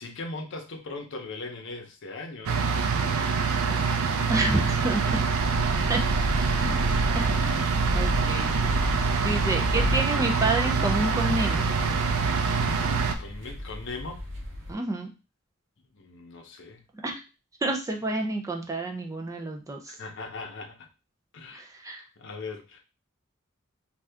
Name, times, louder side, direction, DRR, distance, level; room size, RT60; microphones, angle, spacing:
voice 1, 0.0-2.7 6.8-7.1 13.2-14.2 15.9-16.9 19.9-20.9 21.3-21.6 22.2-22.8, left 3 dB, 60° left, 4 dB, 0.6 m, -39 dB
sound 1, 2.5-13.2, right 5 dB, 80° right, 0.4 m, -25 dB
voice 2, 4.3-5.0 5.9-6.7 7.1-8.5 9.2-11.6 14.7-15.1 17.0-17.2 17.6-19.9 21.5-22.0, right 2 dB, 15° right, 3 dB, 0.4 m, -29 dB
sound 2, 4.5-14.7, left 1 dB, 60° right, 0.9 m, -32 dB
2.7 x 2.3 x 3.4 m, 0.30 s
head